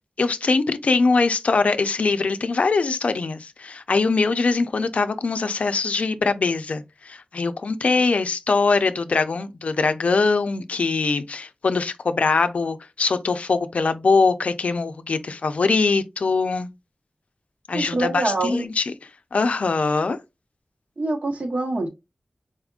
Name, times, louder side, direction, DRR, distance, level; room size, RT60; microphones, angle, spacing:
voice 1, 0.2-16.7 17.7-18.9 19.3-20.2, left 4 dB, 85° left, 0.4 m, -22 dB
voice 2, 17.7-18.6 21.0-21.9, right 2 dB, 65° right, 1.0 m, -25 dB
4.2 x 3.5 x 2.3 m
wide cardioid pair, 85°, 2 cm